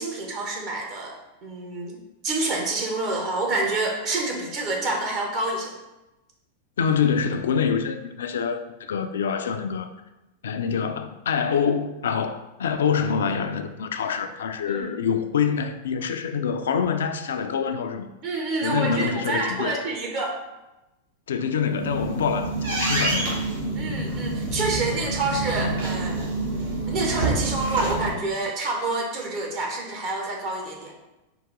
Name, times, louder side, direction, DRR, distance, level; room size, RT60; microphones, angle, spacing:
voice 1, 0.0-5.7 14.6-14.8 18.2-20.4 23.7-26.3 26.9-30.9, right 2 dB, 40° right, 0 dB, 0.8 m, -28 dB
voice 2, 6.8-9.9 10.4-18.1 18.6-19.8 21.3-23.4, left 6 dB, 65° left, 8 dB, 0.3 m, -25 dB
sound 1, 21.6-28.1, right 2 dB, 70° right, 1.3 m, -27 dB
4.8 x 2.5 x 3.6 m, 1.0 s
figure-of-eight pair, 90°, 0 cm